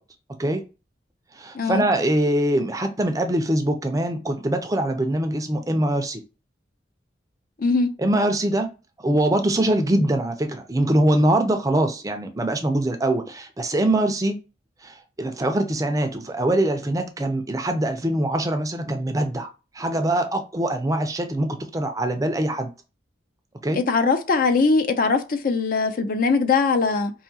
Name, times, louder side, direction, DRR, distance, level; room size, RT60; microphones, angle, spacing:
voice 1, 1.3-6.2 8.0-8.7 9.0-14.4 14.8-19.5 19.7-22.7 23.6-23.8, right 1 dB, 20° right, 0.5 m, -23 dB
voice 2, 7.6-7.9 23.7-27.1, left 4 dB, 45° left, 0.4 m, -21 dB
4.7 x 2.6 x 2.7 m
head